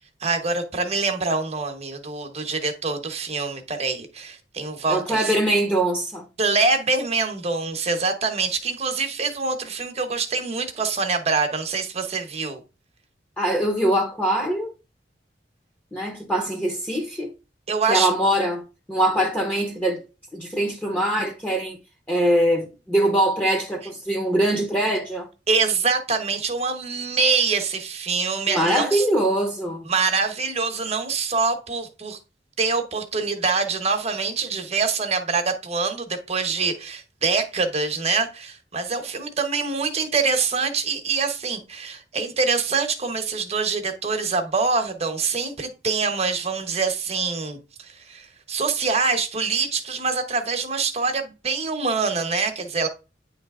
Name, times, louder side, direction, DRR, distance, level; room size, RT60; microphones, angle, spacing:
voice 1, 0.2-5.3 6.4-12.6 17.7-18.1 25.5-29.0 29.9-32.2 32.6-52.9, right 4 dB, 35° right, 1.1 m, -25 dB
voice 2, 4.9-6.2 13.4-14.7 15.9-17.3 17.9-18.6 18.9-20.0 20.3-21.8 22.1-25.3 28.5-29.8, right 1 dB, 10° left, 1.0 m, -22 dB
9.3 x 3.3 x 3.7 m
head